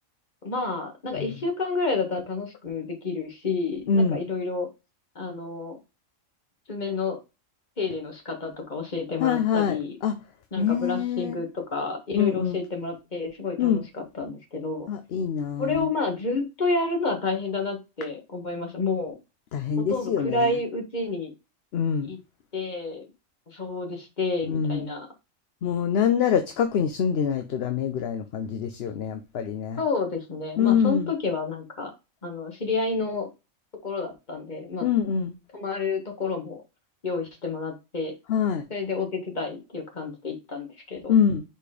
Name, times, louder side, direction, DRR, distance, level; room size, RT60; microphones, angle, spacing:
voice 1, 0.4-4.7 5.1-5.8 6.7-7.2 7.8-9.9 10.5-14.9 15.6-19.2 19.9-21.3 22.1-22.2 22.5-23.0 23.5-25.1 29.8-31.9 32.2-33.3 33.8-34.9 35.5-36.6 37.0-38.1 38.7-41.1, left 3 dB, 35° left, 1.8 m, -29 dB
voice 2, 3.9-4.2 9.2-9.8 10.0-10.2 10.6-11.4 12.1-12.6 13.6-13.8 14.9-15.9 19.5-20.6 21.7-22.1 24.4-24.9 25.6-29.8 30.6-31.1 34.8-35.3 38.3-38.6 41.1-41.4, left 7 dB, 60° left, 0.8 m, -25 dB
5.1 x 4.3 x 4.9 m
omnidirectional pair, 1.4 m